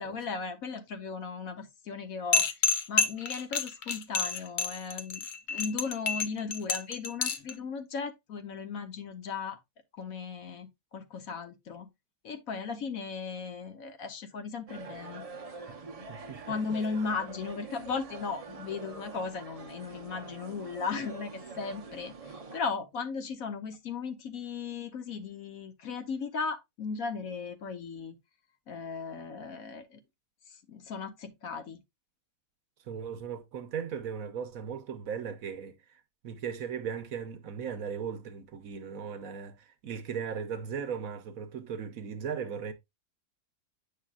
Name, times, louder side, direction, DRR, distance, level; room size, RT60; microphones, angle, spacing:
voice 1, 0.0-9.6 9.9-11.9 12.2-15.2 16.5-28.2 28.7-30.0 30.5-31.8, left 5 dB, 65° left, 1.3 m, -37 dB
sound 1, 2.3-7.5, left 5 dB, 80° left, 0.4 m, -28 dB
sound 2, 14.7-22.6, right 4 dB, 50° right, 0.4 m, -45 dB
voice 2, 16.1-16.4 32.9-42.7, right 7 dB, 65° right, 1.0 m, -37 dB
8.6 x 5.6 x 2.4 m
omnidirectional pair, 1.7 m